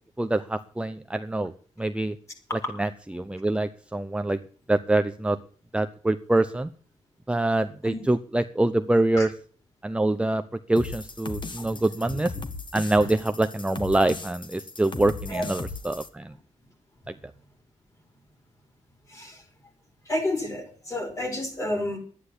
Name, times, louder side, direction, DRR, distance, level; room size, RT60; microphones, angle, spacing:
voice 1, 0.2-2.2 2.8-4.4 4.7-5.4 5.7-6.7 7.3-9.3 9.8-12.3 12.7-16.3 17.1-17.2, right 2 dB, 10° right, 9 dB, 0.7 m, -25 dB
sound 1, 10.8-16.1, left 3 dB, 40° left, 1.8 m, -38 dB
voice 2, 19.1-19.4 20.1-22.0, left 1 dB, 25° left, 5 dB, 4.9 m, -30 dB
12.0 x 9.8 x 8.5 m, 0.43 s
cardioid pair, 105°, 13 cm